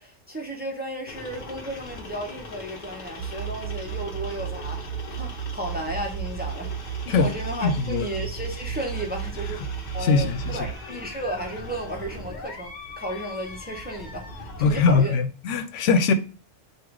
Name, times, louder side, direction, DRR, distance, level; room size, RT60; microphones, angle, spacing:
voice 1, 0.0-9.6 9.9-15.2, right 1 dB, 10° right, 0.6 m, -34 dB
sound 1, 1.1-15.0, left 2 dB, 45° left, 0.8 m, -40 dB
sound 2, 3.2-10.7, right 9 dB, 80° right, 0.9 m, -34 dB
voice 2, 7.6-8.0 10.0-10.6 14.6-16.1, left 4 dB, 90° left, 0.9 m, -21 dB
3.8 x 2.4 x 4.6 m
omnidirectional pair, 1.2 m